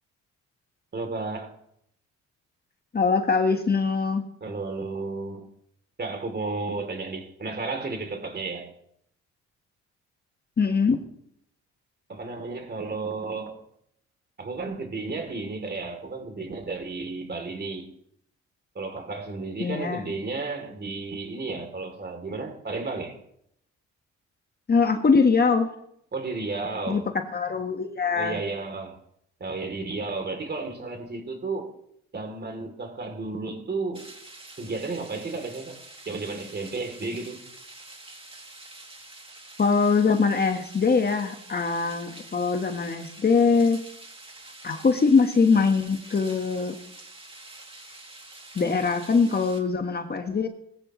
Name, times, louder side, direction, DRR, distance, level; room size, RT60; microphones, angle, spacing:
voice 1, 0.9-1.5 4.4-5.5 6.0-8.7 12.1-13.5 14.4-17.9 18.7-23.2 26.1-27.1 28.1-29.0 29.4-31.7 32.1-34.1 34.6-37.4, right 3 dB, 35° right, 3.0 m, -33 dB
voice 2, 2.9-4.2 10.6-11.0 19.6-20.0 24.7-25.7 26.9-28.4 39.6-43.8 44.6-46.7 48.5-50.5, left 5 dB, 30° left, 1.4 m, -22 dB
sound 1, 33.9-49.6, right 2 dB, 20° right, 2.7 m, -46 dB
19.5 x 14.5 x 3.1 m
cardioid pair, 90°, 30 cm